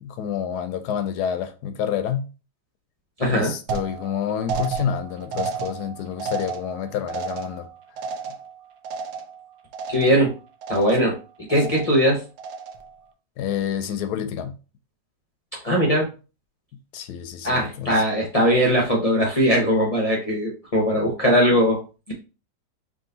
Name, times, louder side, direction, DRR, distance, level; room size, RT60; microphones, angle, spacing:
voice 1, 0.0-2.3 3.3-7.7 13.4-14.6 16.9-18.0, left 8 dB, 70° left, 1.0 m, -28 dB
voice 2, 3.2-3.5 9.9-10.3 10.7-11.2 11.5-12.2 15.6-16.1 17.4-21.8 22.1-22.2, equal, 50° left, 0.4 m, -20 dB
sound 1, 3.7-9.5 9.7-10.3 10.6-11.2 11.5-12.0 12.4-12.9, right 5 dB, 70° right, 1.2 m, -32 dB
3.7 x 2.6 x 3.8 m
omnidirectional pair, 1.9 m